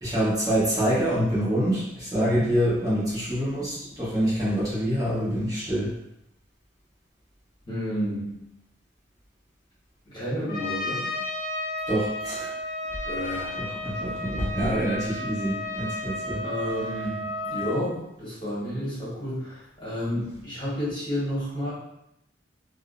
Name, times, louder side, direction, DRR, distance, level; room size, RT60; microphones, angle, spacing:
voice 1, 0.0-5.9 11.9-12.5 13.6-16.4, equal, 20° right, -11 dB, 0.8 m, -26 dB
voice 2, 2.2-2.5 7.7-8.3 10.1-11.1 13.1-13.5 16.4-21.7, equal, 25° left, -10 dB, 1.0 m, -31 dB
Trumpet, 10.5-17.8, left 1 dB, 50° left, 0.6 m, -33 dB
2.5 x 2.0 x 2.4 m, 0.82 s
head